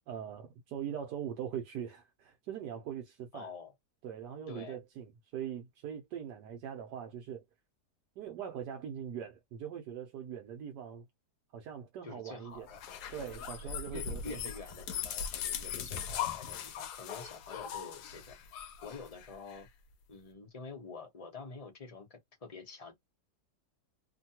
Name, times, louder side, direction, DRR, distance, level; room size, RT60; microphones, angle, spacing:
voice 1, 0.1-3.5 4.0-7.4 8.2-11.0 11.5-12.7 13.1-14.4, right 9 dB, 80° right, 1.3 m, -41 dB
voice 2, 3.3-3.7 4.5-4.8 12.0-12.8 13.6-18.4 18.8-19.7 20.1-22.9, left 4 dB, 30° left, 0.8 m, -47 dB
sound 1, 12.7-19.6, left 8 dB, 80° left, 1.2 m, -40 dB
3.1 x 2.2 x 2.7 m
omnidirectional pair, 1.8 m